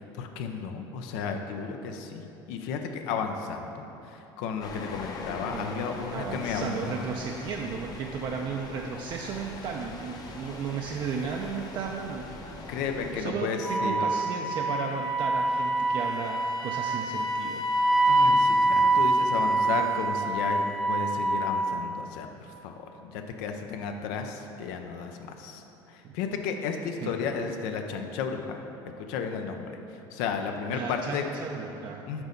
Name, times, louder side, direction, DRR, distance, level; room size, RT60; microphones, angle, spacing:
voice 1, 0.0-7.1 12.7-14.1 18.1-20.6 20.9-25.6 25.9-28.6 29.0-31.2 32.1-32.2, left 6 dB, 85° left, 5 dB, 0.5 m, -33 dB
sound 1, 4.6-13.2, left 3 dB, 40° left, 0.7 m, -41 dB
voice 2, 6.1-12.3 12.5-12.7 13.2-17.6 26.0-26.1 27.0-27.1 30.7-32.0, right 5 dB, 45° right, 1 dB, 0.4 m, -34 dB
Wind instrument woodwind instrument, 13.6-21.9, right 2 dB, 5° left, 0.6 m, -25 dB
6.1 x 4.1 x 5.1 m, 2.9 s
supercardioid pair, 115°, 10 cm